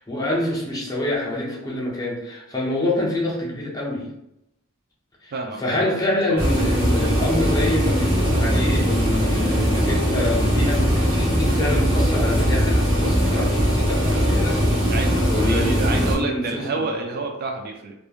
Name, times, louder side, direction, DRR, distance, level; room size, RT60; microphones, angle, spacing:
voice 1, 0.0-4.1 5.2-5.3 5.6-14.8 15.3-16.6, left 1 dB, 15° left, -4 dB, 0.6 m, -26 dB
voice 2, 5.3-6.0 6.3-6.6 14.9-17.9, right 3 dB, 45° right, 2 dB, 0.3 m, -29 dB
sound 1, 6.4-16.1, equal, 25° right, 1.1 m, -20 dB
3.0 x 2.3 x 2.4 m, 0.85 s
head